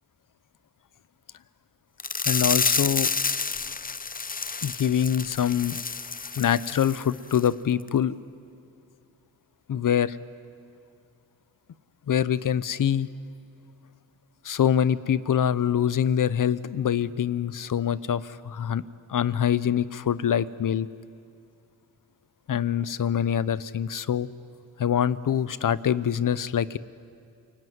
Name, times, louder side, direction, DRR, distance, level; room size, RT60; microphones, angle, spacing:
sound 1, 2.0-7.0 7.3-7.5 7.9-8.0, left 5 dB, 25° left, 0.6 m, -29 dB
voice 1, 2.3-3.1 4.6-5.8 6.4-8.1 9.7-10.2 12.1-13.1 14.4-18.8 19.1-20.9 22.5-24.3 24.8-26.8, left 9 dB, 60° left, 17 dB, 0.9 m, -24 dB
28.5 x 18.5 x 9.6 m, 2.4 s
cardioid pair, 70°, 36 cm